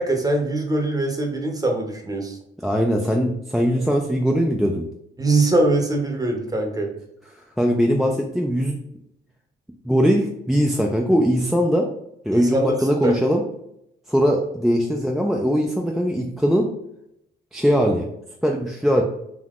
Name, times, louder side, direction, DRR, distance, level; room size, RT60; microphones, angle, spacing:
voice 1, 0.0-2.4 5.2-6.9 12.3-12.7 13.0-13.1, right 2 dB, 20° right, 2 dB, 0.7 m, -22 dB
voice 2, 2.6-4.8 7.6-8.8 9.9-11.9 12.2-13.4 14.1-16.7 17.5-18.1 18.4-19.0, equal, ahead, 0 dB, 0.3 m, -20 dB
3.5 x 2.7 x 2.4 m, 0.78 s
cardioid pair, 90°, 20 cm